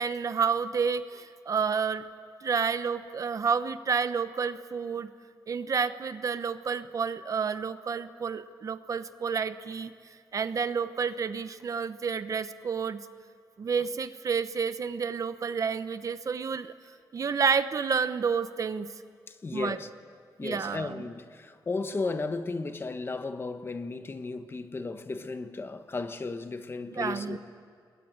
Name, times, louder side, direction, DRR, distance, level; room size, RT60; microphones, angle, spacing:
voice 1, 0.0-2.0 2.4-5.1 5.5-9.9 10.3-13.1 13.6-16.7 17.1-18.9 19.5-19.8 20.4-21.1 27.0-27.4, right 6 dB, 45° right, 1.0 m, -30 dB
voice 2, 19.3-19.9 20.4-27.4, left 3 dB, 30° left, 1.3 m, -34 dB
29.5 x 22.5 x 9.0 m
wide cardioid pair, 145°, 8 cm